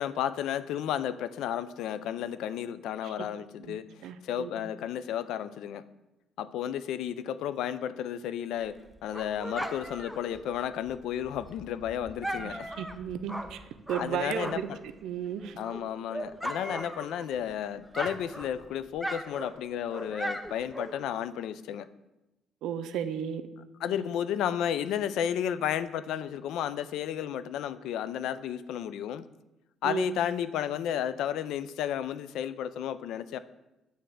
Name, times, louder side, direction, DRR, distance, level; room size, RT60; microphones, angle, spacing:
voice 1, 0.0-3.9 4.2-5.8 6.4-12.7 14.0-14.8 15.6-21.9 23.8-29.2 29.8-33.4, left 10 dB, 80° left, 14 dB, 0.3 m, -32 dB
voice 2, 3.6-4.7 12.4-13.6 13.9-14.7 15.0-15.6 22.6-23.4 29.8-30.2, right 9 dB, 80° right, 10 dB, 0.5 m, -34 dB
Dog, 8.6-14.9 15.2-17.5 17.8-21.2, right 1 dB, 5° right, 0.5 m, -39 dB
7.7 x 3.4 x 6.2 m, 0.98 s
cardioid pair, 110°, 0 cm